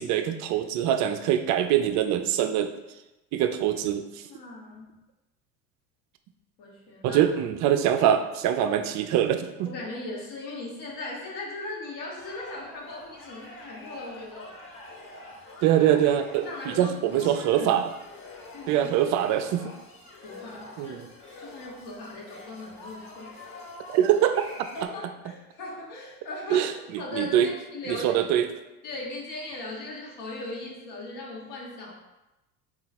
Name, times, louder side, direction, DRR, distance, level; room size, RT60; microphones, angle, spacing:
voice 1, 0.0-2.7 3.3-4.0 7.0-9.7 15.6-17.9 18.7-19.7 20.8-21.0 23.9-24.4 26.5-26.7 27.1-27.5 28.0-28.5, right 10 dB, 45° right, 8 dB, 0.4 m, -23 dB
voice 2, 4.3-4.9 6.6-7.2 9.6-14.6 16.4-17.7 18.2-18.9 20.2-21.0 21.4-23.3 24.7-28.5 28.8-31.9, left 2 dB, 55° left, -3 dB, 1.3 m, -39 dB
sound 1, 12.1-24.9, left 2 dB, 30° left, 1.1 m, -46 dB
3.8 x 2.4 x 4.2 m, 1.0 s
hypercardioid pair, 75°, 44 cm